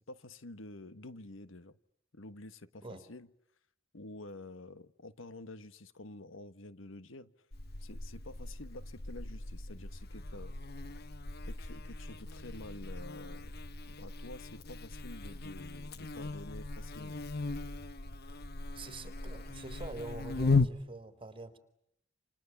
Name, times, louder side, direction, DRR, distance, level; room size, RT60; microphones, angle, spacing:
voice 1, 0.0-1.8 2.1-3.3 3.9-7.3 7.8-10.5 11.5-13.6 13.8-17.2, left 2 dB, 80° left, 1.5 m, -49 dB
Buzz, 7.5-20.7, left 3 dB, 55° left, 1.3 m, -37 dB
voice 2, 18.7-21.6, right 2 dB, 30° right, 3.9 m, -45 dB
29.5 x 28.0 x 7.1 m
head